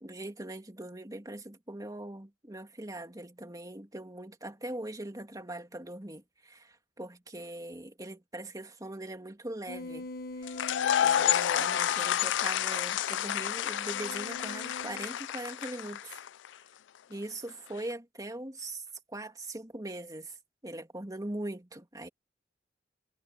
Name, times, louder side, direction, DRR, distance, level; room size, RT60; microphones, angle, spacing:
voice 1, 0.0-10.1 10.4-10.7 11.0-16.3 17.1-20.4 20.6-22.1, right 1 dB, 20° right, 2.4 m, -41 dB
sound 1, 9.7-15.1, left 2 dB, 55° left, 1.1 m, -45 dB
sound 2, 10.5-16.5, left 10 dB, 90° left, 0.4 m, -29 dB
head